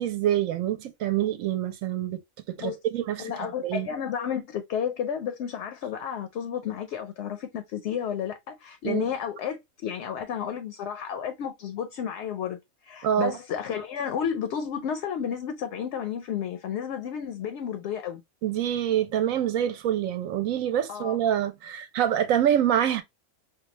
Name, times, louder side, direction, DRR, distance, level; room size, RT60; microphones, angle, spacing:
voice 1, 0.0-2.2 2.5-3.3 3.6-3.9 8.8-9.1 13.0-13.3 18.4-23.0, right 10 dB, 80° right, 1.0 m, -26 dB
voice 2, 3.2-18.2 20.9-21.2, left 8 dB, 65° left, 0.8 m, -32 dB
4.5 x 2.2 x 2.9 m
omnidirectional pair, 1.4 m